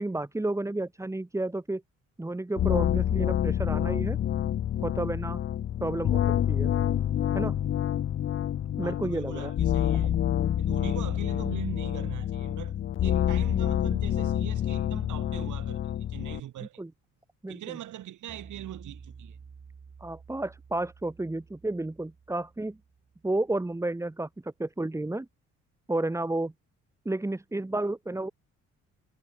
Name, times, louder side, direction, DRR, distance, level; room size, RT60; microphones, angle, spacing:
voice 1, 0.0-1.8 2.2-4.2 4.8-5.4 5.8-6.7 7.3-7.5 8.8-9.5 16.8-16.9 17.4-17.8 20.0-22.8 23.2-25.3 25.9-26.5 27.0-28.3, right 2 dB, 10° right, 1.3 m, -31 dB
sound 1, 2.6-16.4, left 10 dB, 45° left, 0.5 m, -27 dB
voice 2, 8.8-10.2 10.6-16.8 17.5-19.4, right 13 dB, 75° right, 3.4 m, -42 dB
sound 2, 18.3-23.7, right 6 dB, 40° right, 7.1 m, -51 dB
cardioid pair, 90°, 30 cm